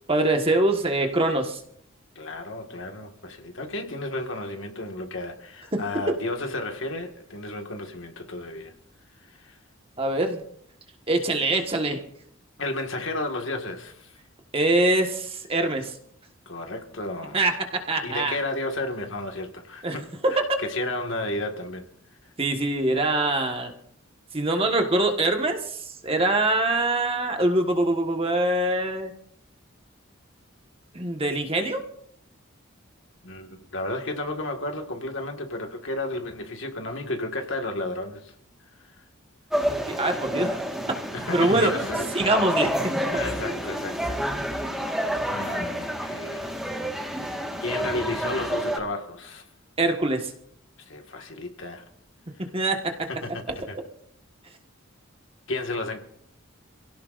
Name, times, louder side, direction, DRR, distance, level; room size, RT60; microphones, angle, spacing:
voice 1, 0.1-1.6 5.7-6.1 10.0-10.4 11.1-12.0 14.5-15.9 17.3-17.5 17.9-18.3 19.8-20.0 20.2-20.3 22.4-23.7 24.3-29.1 30.9-31.8 39.7-40.6 40.9-41.0 41.3-41.7 42.1-42.9 49.8-50.3 52.4-53.1, right 2 dB, 30° right, 1.5 m, -24 dB
voice 2, 2.2-8.7 9.3-9.6 12.6-14.2 16.5-17.4 18.0-20.0 20.3-21.9 33.2-38.3 41.1-42.1 43.1-44.2 45.3-46.6 47.6-49.5 50.9-51.8 53.2-53.8 55.5-56.0, left 2 dB, 65° left, 1.9 m, -32 dB
sound 1, 39.5-48.8, equal, ahead, 1.6 m, -29 dB
28.0 x 16.5 x 2.6 m
head